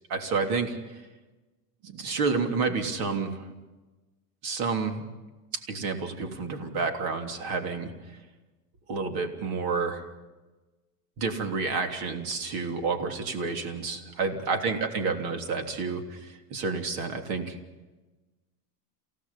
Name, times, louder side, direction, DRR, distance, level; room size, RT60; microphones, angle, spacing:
voice 1, 0.1-1.0 1.8-3.5 4.4-5.1 5.5-7.9 8.9-10.1 11.2-17.6, right 4 dB, 50° right, 5 dB, 3.4 m, -30 dB
28.5 x 17.0 x 5.6 m, 1.2 s
hypercardioid pair, 100°, 47 cm